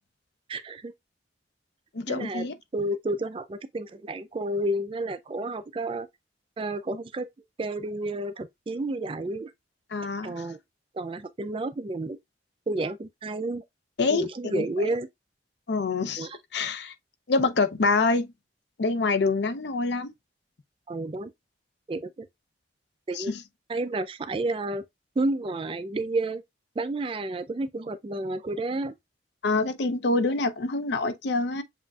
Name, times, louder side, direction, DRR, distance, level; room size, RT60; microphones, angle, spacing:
voice 1, 0.5-0.9 2.1-6.1 6.6-7.3 7.6-9.5 10.2-10.6 10.9-12.2 12.7-13.6 14.1-15.1 16.2-16.4 20.9-21.3 21.9-22.3 23.1-23.3 23.7-24.8 25.2-26.4 26.8-28.9, right 2 dB, 30° right, 0.3 m, -31 dB
voice 2, 1.9-2.5 9.9-10.4 14.0-14.6 15.7-16.9 17.3-18.3 18.8-20.1 23.1-23.4 29.4-31.6, left 3 dB, 70° left, 0.5 m, -26 dB
7.3 x 2.5 x 2.3 m
head